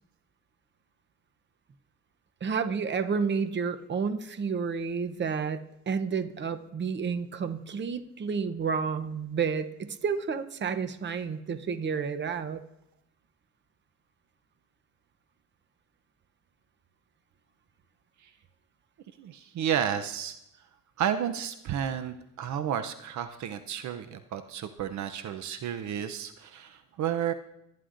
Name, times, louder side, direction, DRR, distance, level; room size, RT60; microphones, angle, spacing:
voice 1, 2.4-5.6 5.9-12.6, right 5 dB, 35° right, 10 dB, 0.8 m, -30 dB
voice 2, 19.2-20.4 21.0-27.3, right 9 dB, 70° right, 10 dB, 0.7 m, -32 dB
20.5 x 9.6 x 2.6 m, 0.82 s
cardioid pair, 90°, 30 cm